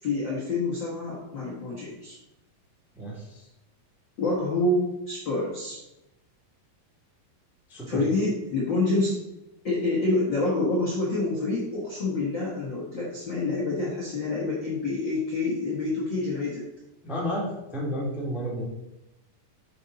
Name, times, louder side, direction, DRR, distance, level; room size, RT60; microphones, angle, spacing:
voice 1, 0.0-2.2 4.2-5.8 7.9-9.2 9.6-16.6, left 2 dB, 50° left, -4 dB, 1.4 m, -27 dB
voice 2, 2.9-3.4 7.7-8.0 17.0-18.6, equal, ahead, -4 dB, 1.2 m, -31 dB
9.6 x 5.3 x 4.1 m, 0.94 s
omnidirectional pair, 3.9 m